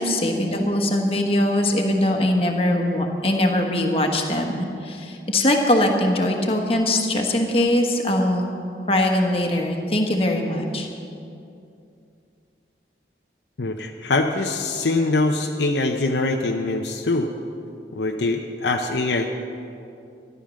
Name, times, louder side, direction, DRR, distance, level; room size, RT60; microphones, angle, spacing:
voice 1, 0.0-8.5 8.9-10.9, left 1 dB, 30° left, 2 dB, 1.4 m, -21 dB
voice 2, 13.6-17.3 17.9-19.3, left 2 dB, 80° left, 3 dB, 0.7 m, -23 dB
14.0 x 11.5 x 6.4 m, 2.6 s
head